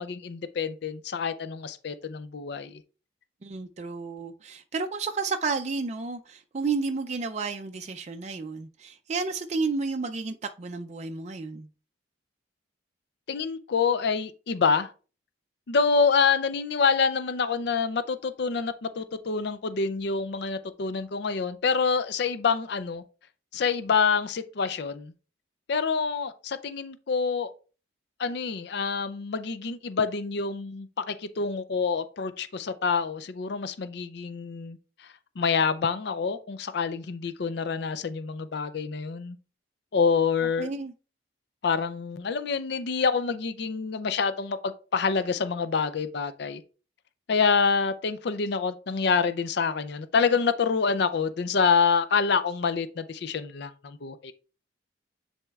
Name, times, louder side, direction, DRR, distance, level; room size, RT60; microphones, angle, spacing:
voice 1, 0.0-2.8 13.3-14.9 15.7-23.0 23.5-25.1 25.7-27.5 28.2-39.4 39.9-40.7 41.6-46.6 47.3-54.3, left 5 dB, 60° left, 0.5 m, -27 dB
voice 2, 3.4-11.7 40.6-40.9, right 4 dB, 35° right, 0.4 m, -31 dB
9.9 x 4.2 x 2.4 m
head